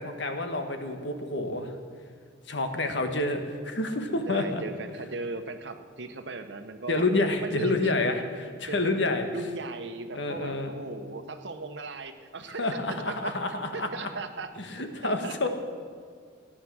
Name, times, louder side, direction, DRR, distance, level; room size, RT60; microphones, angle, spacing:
voice 1, 0.0-1.7 2.5-4.6 6.9-9.2 10.1-10.7 12.6-14.1 14.6-15.5, left 2 dB, 65° left, 6 dB, 1.4 m, -28 dB
voice 2, 4.3-7.1 7.4-8.0 8.5-9.0 9.3-13.3 13.7-14.5 15.0-15.3, right 3 dB, 65° right, 8 dB, 1.0 m, -37 dB
16.0 x 10.0 x 6.3 m, 2.1 s
head